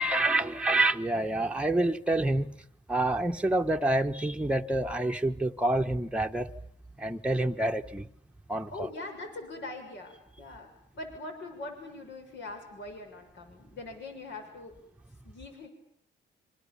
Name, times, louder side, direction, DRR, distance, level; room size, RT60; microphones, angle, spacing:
voice 1, 0.0-2.6 2.9-6.5 7.0-8.1 8.5-8.9, right 2 dB, 5° right, 1.3 m, -27 dB
voice 2, 8.7-10.7 10.9-14.7 15.2-15.7, left 2 dB, 65° left, 6.7 m, -42 dB
27.0 x 25.5 x 7.2 m
cardioid pair, 90°, 20 cm